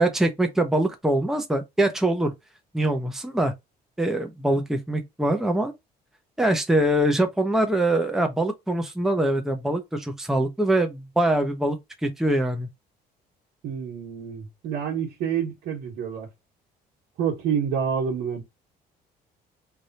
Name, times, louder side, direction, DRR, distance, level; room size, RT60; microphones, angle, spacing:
voice 1, 0.0-2.3 2.7-3.5 4.0-5.7 6.4-12.7, right 1 dB, ahead, 0.8 m, -23 dB
voice 2, 13.6-16.3 17.2-18.4, right 7 dB, 80° right, 1.5 m, -28 dB
3.3 x 2.6 x 4.1 m
cardioid pair, 110°, 17 cm